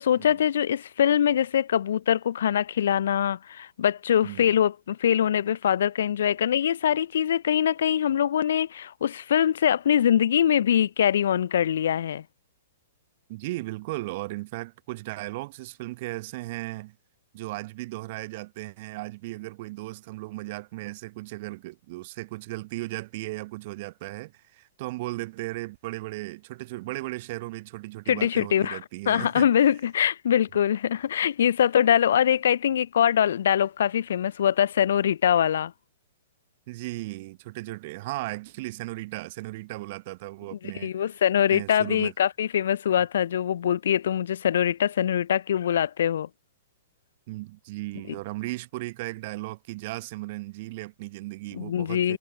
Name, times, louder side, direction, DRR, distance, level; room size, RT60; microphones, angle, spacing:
voice 1, 0.0-12.2 28.1-28.8 29.1-35.7 40.8-46.3 51.5-52.2, left 9 dB, 60° left, 0.3 m, -23 dB
voice 2, 13.3-17.0 17.3-29.5 36.7-40.9 41.5-42.1 47.3-52.2, right 20 dB, 45° right, 0.7 m, -36 dB
figure-of-eight pair, 110°, 0 cm